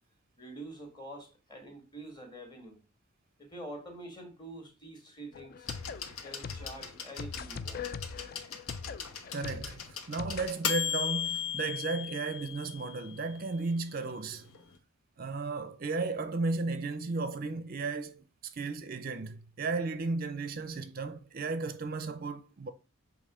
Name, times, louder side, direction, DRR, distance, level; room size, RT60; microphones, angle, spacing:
voice 1, 0.4-2.8 3.4-5.7 6.0-7.9, right 1 dB, 20° left, 1.6 m, -46 dB
sound 1, 5.3-10.5, left 5 dB, 45° left, 0.3 m, -42 dB
sound 2, 5.7-13.4 14.5-14.6, left 8 dB, 85° left, 1.1 m, -37 dB
voice 2, 9.3-14.5 15.2-22.7, right 3 dB, 40° right, 0.5 m, -34 dB
7.5 x 3.0 x 4.8 m
head